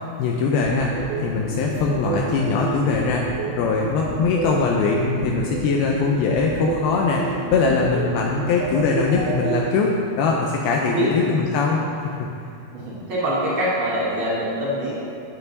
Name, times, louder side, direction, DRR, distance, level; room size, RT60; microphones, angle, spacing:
voice 1, 0.2-0.9 1.2-12.3, left 4 dB, 85° left, -1 dB, 2.2 m, -22 dB
sound 1, 0.6-9.6, right 6 dB, 85° right, 3.0 m, -29 dB
voice 2, 10.6-11.1 12.7-14.9, right 1 dB, 55° right, -8 dB, 1.5 m, -25 dB
8.2 x 7.7 x 4.0 m, 2.5 s
omnidirectional pair, 4.8 m